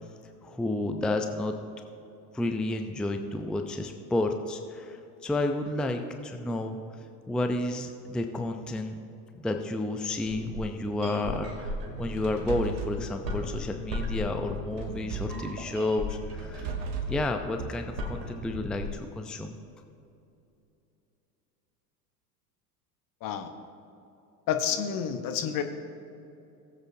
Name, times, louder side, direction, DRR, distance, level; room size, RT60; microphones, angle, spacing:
voice 1, 0.4-1.6 2.3-6.8 7.3-9.0 9.3-16.7 17.1-19.6, left 2 dB, ahead, 5 dB, 0.5 m, -31 dB
sound 1, 10.1-19.0, left 1 dB, 85° right, 2.2 m, -37 dB
sound 2, 12.2-13.0 14.8-15.5 16.4-17.2, right 4 dB, 60° right, 1.7 m, -35 dB
voice 2, 24.5-25.6, left 8 dB, 45° left, 7 dB, 1.1 m, -29 dB
18.5 x 8.0 x 2.7 m, 2.8 s
hypercardioid pair, 80°, 49 cm